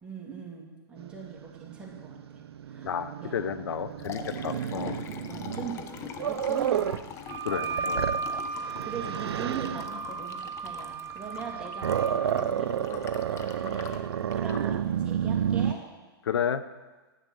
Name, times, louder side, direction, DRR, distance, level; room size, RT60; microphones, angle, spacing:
voice 1, 0.0-2.9 3.2-3.5 4.7-5.0 5.3-6.9 7.6-8.3 8.6-15.8, right 6 dB, 5° right, -3 dB, 2.3 m, -41 dB
Growling, 1.0-7.1 7.5-9.9 11.3-15.7, right 9 dB, 80° right, 0.5 m, -31 dB
voice 2, 2.8-4.9 7.4-8.1 16.2-16.6, left 8 dB, 85° left, 13 dB, 0.7 m, -31 dB
Liquid, 3.7-15.6, left 8 dB, 20° left, 0.6 m, -43 dB
Wind instrument woodwind instrument, 7.3-12.2, right 4 dB, 25° right, 1.2 m, -35 dB
11.0 x 8.1 x 6.3 m, 1.2 s
hypercardioid pair, 140°, 13 cm